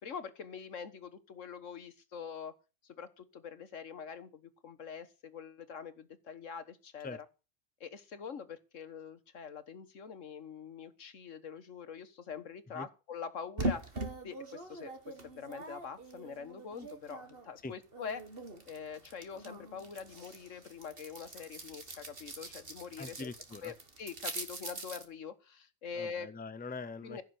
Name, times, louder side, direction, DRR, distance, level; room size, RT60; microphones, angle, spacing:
voice 1, 0.0-2.5 2.8-7.2 7.8-13.9 14.2-18.2 18.7-23.3 23.6-26.3 27.0-27.2, left 6 dB, 90° left, 1.7 m, -44 dB
sound 1, 13.6-17.5 17.8-25.1, right 2 dB, 50° right, 2.2 m, -42 dB
voice 2, 23.0-23.7 25.9-27.2, left 3 dB, 10° left, 0.6 m, -43 dB
15.5 x 6.6 x 8.2 m
omnidirectional pair, 1.3 m